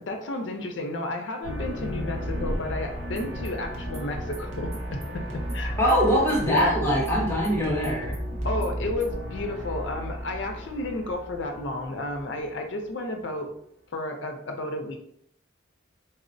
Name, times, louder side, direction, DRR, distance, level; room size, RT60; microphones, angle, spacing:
voice 1, 0.0-5.7 6.4-6.7 8.4-13.5 13.9-15.0, left 2 dB, 75° left, 3 dB, 0.5 m, -32 dB
sound 1, 1.4-12.6, equal, 60° right, 1.2 m, -34 dB
sound 2, 3.0-9.2, equal, 35° right, 0.7 m, -41 dB
voice 2, 5.8-8.2, equal, 10° left, -4 dB, 0.7 m, -23 dB
4.2 x 2.0 x 2.6 m, 0.70 s
head